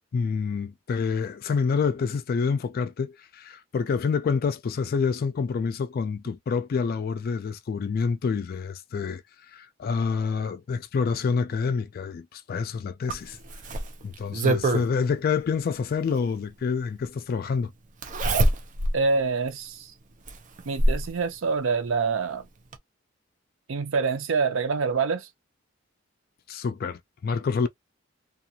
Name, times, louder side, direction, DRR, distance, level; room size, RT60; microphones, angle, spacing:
voice 1, 0.1-9.2 9.5-13.4 14.0-17.7 26.5-27.7, left 5 dB, 50° left, 0.3 m, -27 dB
Zipper (clothing), 13.1-14.9 16.3-16.4 18.0-19.0 19.5-19.6 20.3-21.1 22.3-22.4 22.7-22.8, right 1 dB, 40° right, 0.6 m, -24 dB
voice 2, 18.9-19.9 20.7-22.5 23.7-25.3, right 4 dB, 90° right, 0.6 m, -26 dB
2.4 x 2.4 x 2.7 m
head